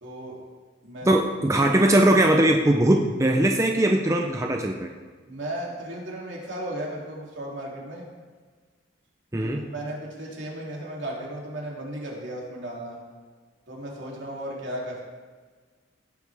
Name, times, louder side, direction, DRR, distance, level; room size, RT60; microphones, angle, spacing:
voice 1, 0.0-0.4 0.8-1.2 5.2-8.0 9.4-13.0 13.7-15.0, right 1 dB, 70° right, -3 dB, 2.9 m, -35 dB
voice 2, 1.0-4.9 9.3-9.6, right 1 dB, 15° right, 2 dB, 0.5 m, -20 dB
17.0 x 8.2 x 3.5 m, 1.5 s
head